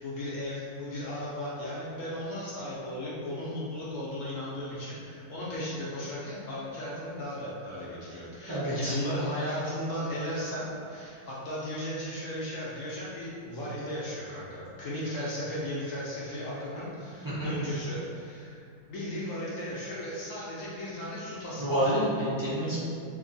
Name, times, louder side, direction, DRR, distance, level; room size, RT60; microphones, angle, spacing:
voice 1, 0.0-18.6 18.9-21.9, left 1 dB, 65° left, -7 dB, 0.8 m, -36 dB
voice 2, 8.5-9.0 17.2-17.5 21.6-22.9, right 1 dB, 30° right, -12 dB, 0.4 m, -28 dB
3.0 x 2.6 x 3.8 m, 2.5 s
omnidirectional pair, 1.9 m